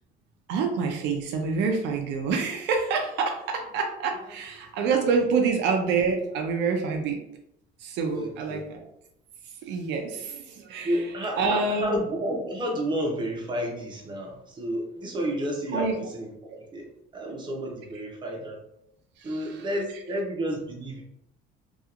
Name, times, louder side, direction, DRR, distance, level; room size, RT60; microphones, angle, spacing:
voice 1, 0.5-7.2 7.8-8.8 9.6-11.0 11.4-12.0 15.7-15.9 19.2-19.6, right 4 dB, 70° right, 3 dB, 0.5 m, -27 dB
voice 2, 8.1-8.6 10.8-16.9 17.1-18.6 19.2-21.0, equal, 25° right, 0 dB, 0.6 m, -31 dB
2.8 x 2.4 x 2.4 m, 0.79 s
cardioid pair, 130°, 19 cm